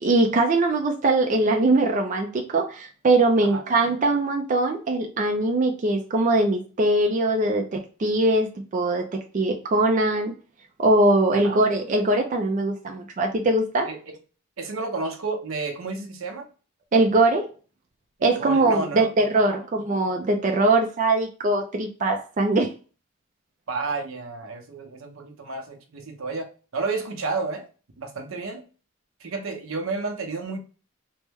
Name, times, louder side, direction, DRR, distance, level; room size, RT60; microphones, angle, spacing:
voice 1, 0.0-9.0 9.3-10.3 10.8-13.9 16.9-17.5 18.2-22.7, right 2 dB, 40° right, 2 dB, 0.4 m, -21 dB
voice 2, 11.3-11.7 13.8-14.0 14.6-16.5 18.2-19.1 19.5-19.6 23.7-26.5 26.7-27.7 28.0-28.6 29.2-30.6, right 3 dB, 85° right, 4 dB, 0.7 m, -31 dB
3.1 x 2.1 x 3.3 m, 0.36 s
head